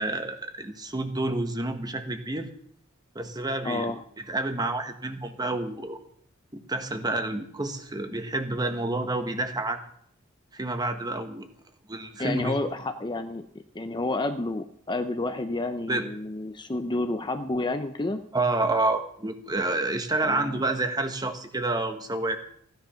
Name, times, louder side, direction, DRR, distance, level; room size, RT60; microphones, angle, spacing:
voice 1, 0.0-2.5 3.1-3.9 4.3-6.0 6.5-9.8 10.5-11.5 11.9-12.7 15.9-16.0 18.3-22.4, right 2 dB, 20° right, 7 dB, 1.3 m, -29 dB
voice 2, 3.6-4.0 12.2-13.5 13.7-18.2 20.2-20.6, left 2 dB, 20° left, 8 dB, 0.7 m, -30 dB
15.5 x 10.5 x 5.8 m, 0.64 s
head